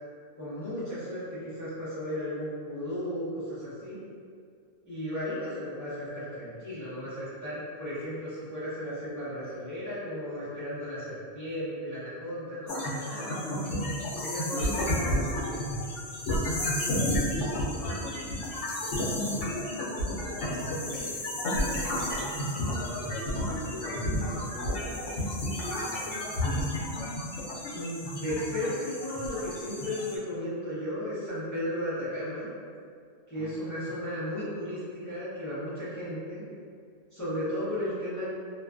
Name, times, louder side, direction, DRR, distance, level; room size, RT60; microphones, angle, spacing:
voice 1, 0.4-4.0 4.8-13.6 14.2-15.6 27.7-32.5 33.3-36.5 37.1-38.2, left 1 dB, 20° left, -13 dB, 0.6 m, -35 dB
sound 1, 12.7-30.2, left 1 dB, 90° left, 0.9 m, -31 dB
voice 2, 16.7-18.5 18.8-19.6 20.2-26.7 33.3-34.1, equal, 55° right, -10 dB, 0.7 m, -44 dB
2.4 x 2.3 x 2.3 m, 2.2 s
omnidirectional pair, 1.2 m